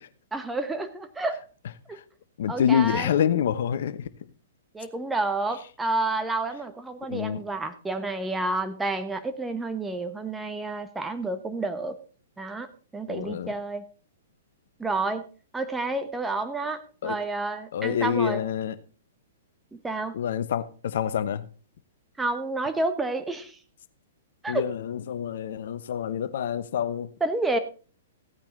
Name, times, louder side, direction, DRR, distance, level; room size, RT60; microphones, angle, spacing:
voice 1, 0.3-1.4 1.9-2.0 2.5-3.1 4.7-12.0 12.4-12.7 12.9-13.8 14.8-15.2 15.5-18.4 19.7-20.1 22.2-23.6 24.4-24.7 27.2-27.6, right 2 dB, 10° right, 1.2 m, -29 dB
voice 2, 2.4-4.0 7.1-7.4 13.1-13.5 17.0-17.2 17.7-18.7 20.1-21.4 24.5-27.1, left 9 dB, 60° left, 1.0 m, -27 dB
15.5 x 8.8 x 4.0 m
figure-of-eight pair, 115°, 0 cm